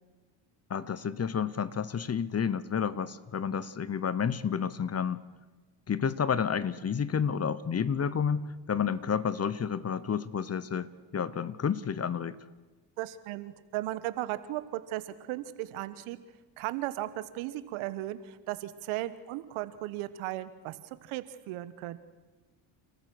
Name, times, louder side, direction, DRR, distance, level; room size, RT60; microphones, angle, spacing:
voice 1, 0.7-5.2 5.9-12.4, left 7 dB, 30° left, 18 dB, 0.9 m, -30 dB
voice 2, 13.0-16.2 16.6-22.0, right 15 dB, 80° right, 13 dB, 1.3 m, -36 dB
30.0 x 14.0 x 6.2 m, 1.2 s
supercardioid pair, 75°, 50 cm